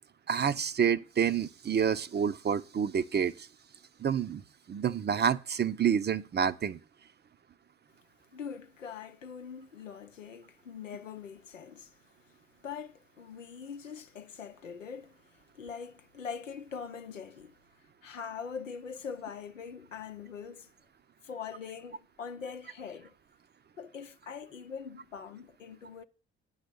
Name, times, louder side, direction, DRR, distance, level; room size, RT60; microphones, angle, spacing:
voice 1, 0.3-3.5 4.0-4.4 4.7-6.8, right 7 dB, 30° right, 0.7 m, -28 dB
voice 2, 8.3-12.0 12.6-17.6 18.0-20.7 21.2-23.1 23.8-26.0, left 6 dB, 85° left, 0.7 m, -43 dB
9.9 x 5.6 x 7.9 m
figure-of-eight pair, 50°, 37 cm